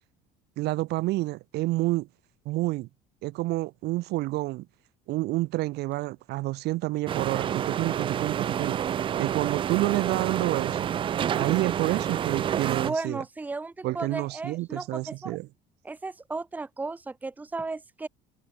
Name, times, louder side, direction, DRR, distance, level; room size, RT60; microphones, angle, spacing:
voice 1, 0.6-2.1 2.4-2.9 3.2-4.7 5.1-8.8 9.2-10.9 11.3-13.2 13.8-15.5, right 19 dB, 65° right, 1.3 m, -29 dB
sound 1, 7.1-12.9, right 9 dB, 30° right, 0.5 m, -28 dB
voice 2, 12.8-15.4 15.8-18.1, right 3 dB, 10° right, 1.1 m, -35 dB
cardioid pair, 160°, 19 cm